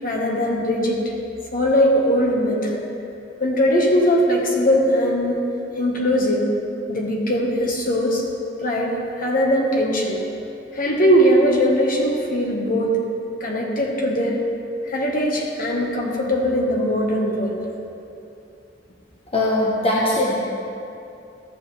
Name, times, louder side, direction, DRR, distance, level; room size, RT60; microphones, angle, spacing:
voice 1, 0.0-1.0 1.5-2.8 3.4-5.4 5.8-6.5 6.9-8.2 8.6-10.2 10.7-13.0 13.4-14.4 14.8-17.5, equal, 50° left, -1 dB, 1.4 m, -20 dB
voice 2, 19.3-20.3, left 1 dB, 35° left, -5 dB, 1.0 m, -20 dB
13.5 x 7.5 x 3.3 m, 2.7 s
head